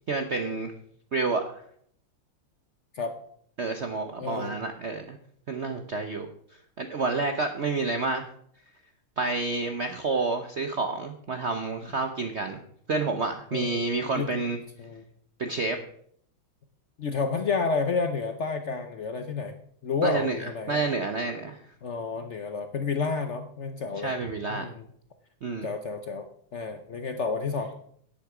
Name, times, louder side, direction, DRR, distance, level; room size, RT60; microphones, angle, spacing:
voice 1, 0.1-0.7 1.1-1.4 3.6-5.2 5.5-6.3 6.8-8.2 9.2-12.6 12.9-14.6 15.4-15.8 20.0-20.4 20.7-21.6 24.0-24.7 25.4-25.7, right 3 dB, 75° right, 5 dB, 0.6 m, -29 dB
voice 2, 4.2-4.6 13.5-13.8 14.1-14.3 14.8-15.0 17.0-19.5 19.8-20.8 21.8-24.2 24.5-24.9 25.6-26.2 26.5-27.7, left 4 dB, 75° left, 7 dB, 0.6 m, -30 dB
10.0 x 9.8 x 4.9 m, 0.64 s
omnidirectional pair, 2.3 m